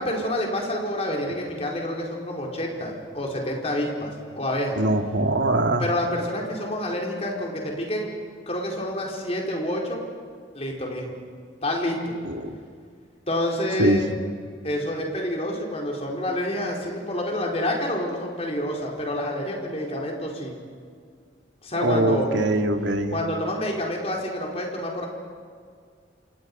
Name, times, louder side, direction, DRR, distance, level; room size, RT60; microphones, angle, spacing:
voice 1, 0.0-4.8 5.8-8.1 8.5-10.0 10.5-11.1 11.6-12.1 13.3-14.1 14.6-20.5 21.6-22.3 23.1-25.1, left 1 dB, 35° left, 0 dB, 4.5 m, -28 dB
voice 2, 4.8-5.9 12.3-12.5 13.8-14.0 21.8-23.2, right 1 dB, 80° right, 5 dB, 2.1 m, -22 dB
28.0 x 27.5 x 5.6 m, 2.1 s
head